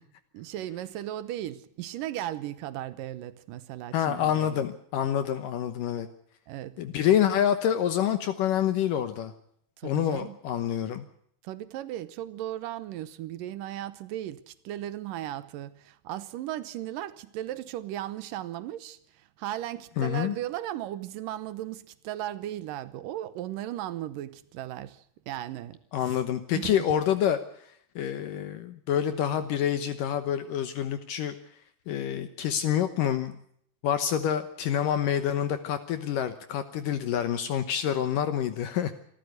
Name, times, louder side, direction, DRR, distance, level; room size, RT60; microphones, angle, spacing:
voice 1, 0.3-4.6 5.2-5.3 6.5-6.8 9.8-10.4 11.4-25.8 26.0-26.2 26.5-26.8, right 13 dB, 70° right, 2.3 m, -36 dB
voice 2, 3.9-6.1 6.8-9.3 9.8-11.1 20.0-20.4 25.9-27.4 28.0-31.4 31.9-33.4 33.8-38.9, left 10 dB, 70° left, 2.4 m, -27 dB
25.5 x 14.0 x 8.0 m
omnidirectional pair, 4.5 m